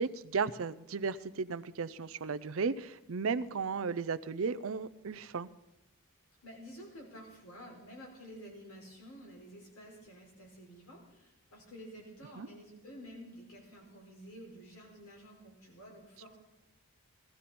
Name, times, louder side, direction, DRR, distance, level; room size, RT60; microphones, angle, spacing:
voice 1, 0.0-5.5 12.4-12.5, right 5 dB, 70° right, 14 dB, 0.5 m, -35 dB
voice 2, 6.4-16.4, equal, 85° left, -1 dB, 4.9 m, -51 dB
18.5 x 13.0 x 4.3 m, 0.95 s
head